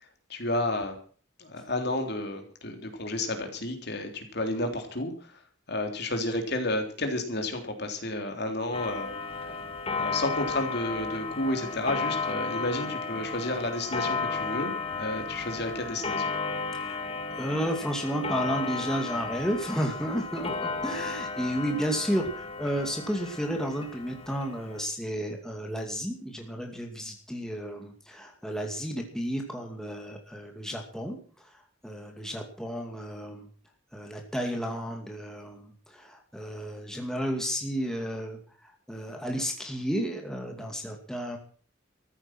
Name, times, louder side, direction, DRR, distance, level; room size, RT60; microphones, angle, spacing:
voice 1, 0.3-0.9 1.4-5.4 5.7-9.4 10.0-16.4, left 1 dB, 55° left, 5 dB, 3.5 m, -31 dB
Clock, 8.7-24.8, left 4 dB, 30° left, 1.8 m, -34 dB
voice 2, 17.3-33.5 33.9-41.4, equal, 5° left, 2 dB, 2.4 m, -32 dB
14.5 x 13.5 x 6.1 m, 0.44 s
head